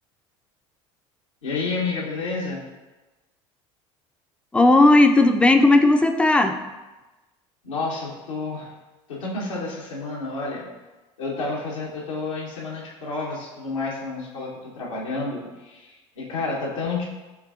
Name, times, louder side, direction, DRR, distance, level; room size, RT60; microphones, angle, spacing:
voice 1, 1.4-2.6 7.6-8.7 9.1-10.6 11.2-17.1, left 3 dB, 90° left, -6 dB, 0.8 m, -30 dB
voice 2, 4.5-6.6, left 2 dB, 5° left, 6 dB, 0.3 m, -15 dB
5.6 x 3.3 x 2.4 m, 1.1 s
hypercardioid pair, 75°, 16 cm